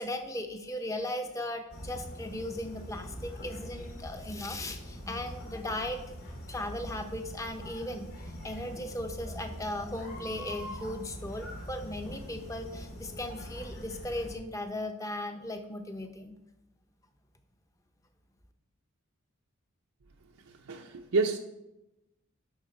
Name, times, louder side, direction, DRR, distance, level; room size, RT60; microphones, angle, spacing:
voice 1, 0.0-6.0 6.5-8.1 8.4-16.3, left 1 dB, 15° left, 0.7 m, -37 dB
sound 1, 1.7-14.3, equal, 85° left, 2.2 m, -43 dB
voice 2, 20.5-21.4, right 3 dB, 85° right, 0.6 m, -29 dB
10.5 x 5.9 x 4.3 m
head